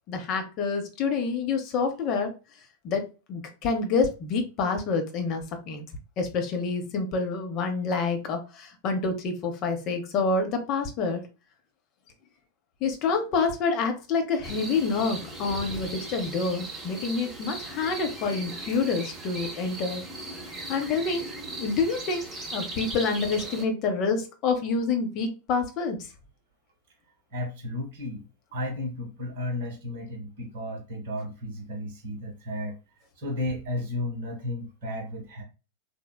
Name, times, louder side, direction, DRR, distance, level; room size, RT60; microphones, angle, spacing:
voice 1, 0.1-2.3 2.8-5.8 6.2-11.2 12.8-20.0 20.7-21.3 21.6-22.2 22.5-26.0, left 4 dB, 40° left, 5 dB, 0.5 m, -27 dB
sound 1, 14.4-23.6, right 2 dB, 20° right, 0.8 m, -38 dB
voice 2, 27.3-28.2 28.5-32.8 33.2-35.4, left 1 dB, 55° right, 3 dB, 0.8 m, -33 dB
3.1 x 2.0 x 2.2 m, 0.31 s
figure-of-eight pair, 90°, 0 cm